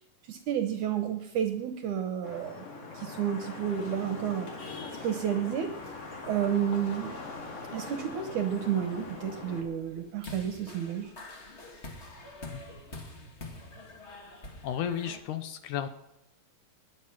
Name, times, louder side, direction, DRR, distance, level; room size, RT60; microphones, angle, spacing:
voice 1, 0.3-2.7 2.9-4.5 4.9-5.9 6.3-7.2 7.7-11.1, right 9 dB, 70° right, 7 dB, 2.1 m, -31 dB
Vehicle horn car horn honking / Traffic noise roadway noise, 2.2-9.6, left 3 dB, 50° left, 2.9 m, -42 dB
sound 1, 5.7-15.2, left 2 dB, 35° left, 1.1 m, -48 dB
voice 2, 14.6-15.9, left 9 dB, 75° left, 10 dB, 2.0 m, -33 dB
20.0 x 7.6 x 5.9 m, 0.90 s
omnidirectional pair, 4.0 m